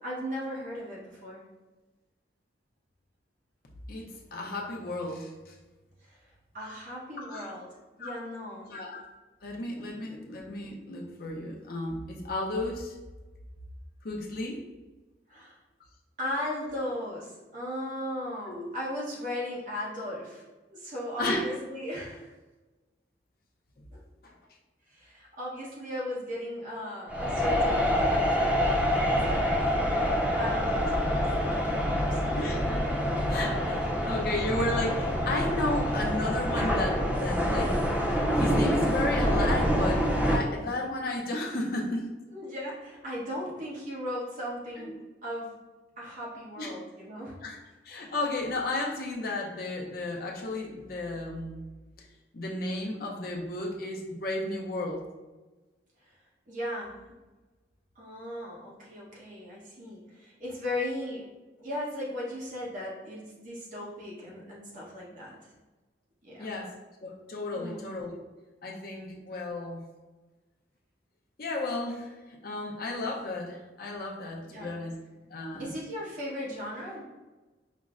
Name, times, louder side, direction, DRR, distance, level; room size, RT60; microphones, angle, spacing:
voice 1, 0.0-1.4 6.0-6.3 6.5-7.7 8.0-8.7 9.8-10.3 15.3-15.6 16.2-20.4 20.7-22.3 23.9-24.0 24.9-29.7 30.4-31.6 31.9-32.2 33.8-34.1 42.3-44.9 45.2-45.5 46.0-47.4 56.0-56.2 56.5-57.1 57.9-61.3 61.6-65.5 66.2-66.5 67.5-67.8 74.4-74.8 75.5-77.0, left 1 dB, 45° right, -5 dB, 1.0 m, -37 dB
voice 2, 3.9-5.5 7.3-7.5 8.0-8.1 8.7-9.0 9.4-13.0 14.0-14.6 18.5-18.7 21.2-21.4 32.3-32.8 33.3-38.0 38.3-42.1 44.8-44.9 46.6-46.7 47.4-47.6 47.9-51.6 52.0-52.1 52.3-55.0 66.4-66.7 67.0-68.2 68.6-69.8 71.4-75.0 75.3-75.7, left 2 dB, 55° left, 0 dB, 0.5 m, -33 dB
sound 1, 27.1-40.4, equal, 10° right, 0.3 m, -26 dB
5.1 x 2.1 x 2.4 m, 1.2 s
head